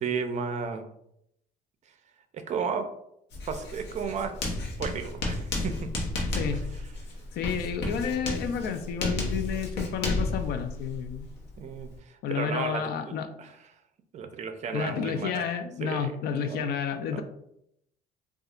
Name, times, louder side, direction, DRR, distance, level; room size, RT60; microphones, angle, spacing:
voice 1, 0.0-0.9 2.3-2.9 3.5-4.3 4.8-6.0 11.6-13.5 14.1-15.5 15.8-16.2 16.5-16.6 17.1-17.2, right 6 dB, 45° right, 8 dB, 0.5 m, -33 dB
Writing, 3.3-12.0, left 2 dB, 85° left, 0.9 m, -32 dB
voice 2, 6.3-6.7 7.3-11.3 12.2-13.3 14.7-17.2, left 7 dB, 70° left, 8 dB, 0.5 m, -31 dB
4.1 x 2.3 x 2.4 m, 0.77 s
cardioid pair, 110°, 17 cm